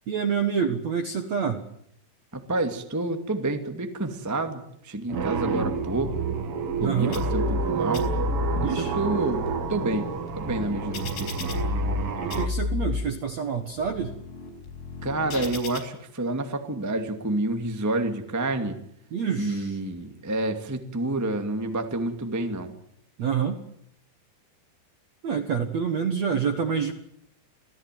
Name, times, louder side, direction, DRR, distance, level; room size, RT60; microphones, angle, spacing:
voice 1, 0.1-1.6 6.8-7.2 8.6-8.9 12.2-14.1 19.1-19.7 23.2-23.6 25.2-26.9, right 7 dB, 65° right, 7 dB, 1.7 m, -27 dB
voice 2, 2.3-6.2 6.8-8.1 8.5-10.1 10.3-11.6 15.0-18.8 19.3-22.7, right 2 dB, 15° right, 5 dB, 0.5 m, -29 dB
sound 1, 5.1-12.5, right 6 dB, 50° right, 1.9 m, -29 dB
sound 2, 7.1-7.7 7.9-8.7 9.2-12.0 12.3-13.0 13.6-15.8, left 4 dB, 70° left, 7.1 m, -31 dB
27.0 x 17.5 x 9.3 m, 0.72 s
omnidirectional pair, 5.3 m